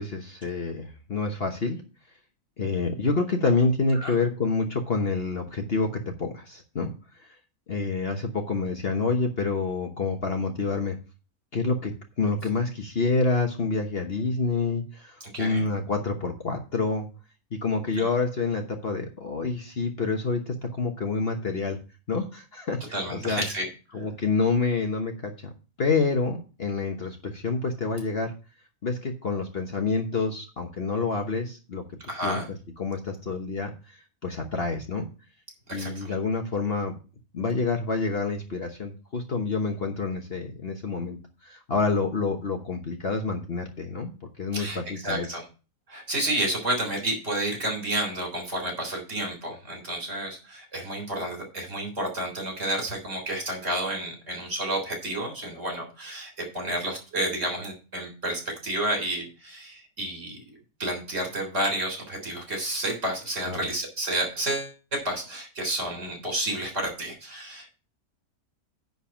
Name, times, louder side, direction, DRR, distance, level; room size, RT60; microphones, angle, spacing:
voice 1, 0.0-1.8 2.6-5.9 6.2-6.9 7.7-10.9 11.5-11.9 12.2-17.1 17.5-21.8 22.1-23.4 23.9-25.5 25.8-28.3 28.8-31.8 32.2-32.4 32.8-35.1 35.7-36.9 37.3-41.2 41.4-44.1 44.4-45.3 63.5-63.6, left 4 dB, 45° left, 4 dB, 1.2 m, -27 dB
voice 2, 15.3-15.7 22.9-23.7 23.9-24.0 32.1-32.5 35.7-36.1 44.5-45.4 45.9-60.4 60.8-67.7, right 1 dB, 50° right, 2 dB, 4.2 m, -30 dB
10.0 x 4.1 x 7.2 m, 0.33 s
omnidirectional pair, 1.6 m